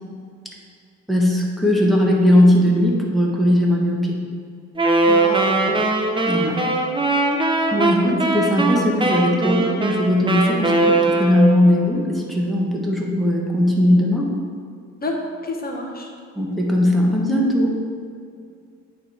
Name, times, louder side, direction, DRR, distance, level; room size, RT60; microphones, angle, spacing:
voice 1, 1.1-4.2 6.2-6.6 7.7-14.3 16.3-17.8, left 1 dB, ahead, -3 dB, 1.3 m, -18 dB
Wind instrument woodwind instrument, 4.8-11.7, right 2 dB, 15° right, 0.7 m, -20 dB
voice 2, 5.0-5.8 15.0-15.2 15.4-16.1, left 2 dB, 30° left, 1 dB, 1.1 m, -29 dB
8.7 x 3.4 x 4.4 m, 2.3 s
cardioid pair, 90°, 30 cm